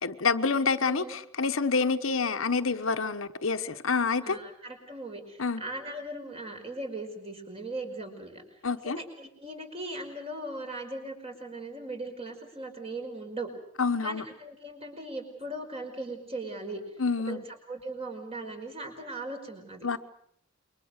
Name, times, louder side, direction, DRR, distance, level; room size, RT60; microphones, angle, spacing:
voice 1, 0.0-4.4 5.4-5.6 8.6-9.0 13.8-14.2 17.0-17.4 19.8-20.0, left 4 dB, 70° left, 8 dB, 1.1 m, -27 dB
voice 2, 0.8-1.1 4.2-8.4 8.8-13.5 14.0-16.8 17.3-17.4 17.7-19.9, right 2 dB, 30° right, 4 dB, 5.3 m, -39 dB
28.0 x 23.0 x 6.6 m, 0.68 s
head